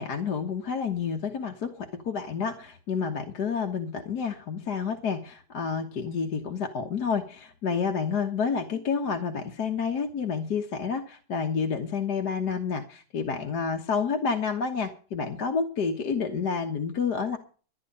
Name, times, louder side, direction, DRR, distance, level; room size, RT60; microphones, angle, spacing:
voice 1, 0.0-17.4, left 6 dB, 55° left, 4 dB, 1.8 m, -29 dB
13.0 x 10.0 x 5.5 m, 0.40 s
omnidirectional pair, 2.1 m